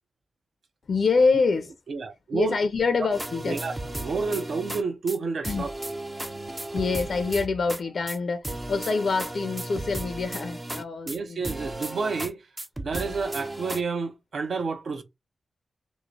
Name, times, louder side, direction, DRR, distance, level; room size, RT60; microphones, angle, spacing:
voice 1, 0.9-1.7 2.3-3.6 5.4-5.6 6.7-11.5, left 4 dB, 60° left, 0.4 m, -25 dB
voice 2, 1.9-2.5 3.5-5.7 11.1-12.4 12.8-15.0, right 4 dB, 70° right, 0.6 m, -30 dB
sound 1, 3.1-4.8 5.1-5.2 5.4-7.8 8.1-8.2 8.4-11.2 11.4-12.3 12.6-13.8, right 1 dB, 15° right, 0.4 m, -35 dB
2.9 x 2.0 x 3.7 m
wide cardioid pair, 110°, 0 cm